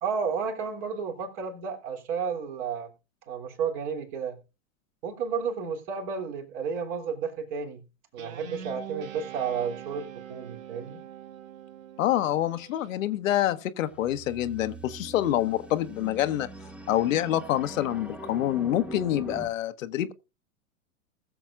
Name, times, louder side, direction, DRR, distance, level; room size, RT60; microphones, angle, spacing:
voice 1, 0.0-2.9 3.3-4.4 5.0-7.8 8.1-11.0, right 6 dB, 50° right, 3.1 m, -32 dB
Guitar, 8.2-12.9, right 10 dB, 70° right, 1.5 m, -43 dB
voice 2, 12.0-16.5 16.9-20.1, left 12 dB, 65° left, 1.0 m, -26 dB
sound 1, 13.9-19.5, right 1 dB, 5° right, 1.0 m, -42 dB
20.0 x 7.1 x 2.4 m
hypercardioid pair, 95°, 42 cm